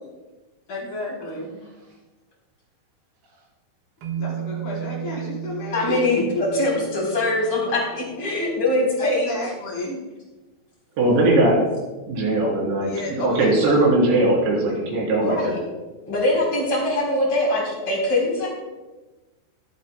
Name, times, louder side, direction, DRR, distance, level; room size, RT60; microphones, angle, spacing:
voice 1, 0.7-1.6 4.1-6.0 9.0-10.0 12.8-13.8, left 1 dB, 60° left, -6 dB, 6.0 m, -32 dB
sound 1, 4.0-8.3, right 10 dB, 70° right, 3.0 m, -34 dB
voice 2, 5.7-6.2 6.5-9.3 15.2-15.6 16.1-18.5, left 2 dB, 35° left, -3 dB, 4.5 m, -22 dB
voice 3, 11.0-11.6 12.1-15.5, right 2 dB, 85° right, -3 dB, 5.6 m, -19 dB
23.5 x 8.3 x 2.3 m, 1.2 s
omnidirectional pair, 5.1 m